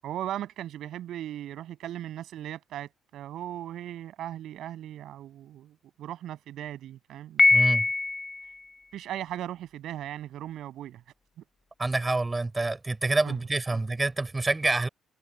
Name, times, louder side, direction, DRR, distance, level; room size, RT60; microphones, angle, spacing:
voice 1, 0.0-7.4 8.9-11.0 11.4-11.5 13.2-13.4 13.7-13.8, right 12 dB, 80° right, 7.8 m, -38 dB
Piano, 7.4-8.5, left 3 dB, 25° left, 3.4 m, -22 dB
voice 2, 7.5-7.9 11.8-14.9, right 2 dB, 20° right, 5.9 m, -27 dB
cardioid pair, 90°, 0 cm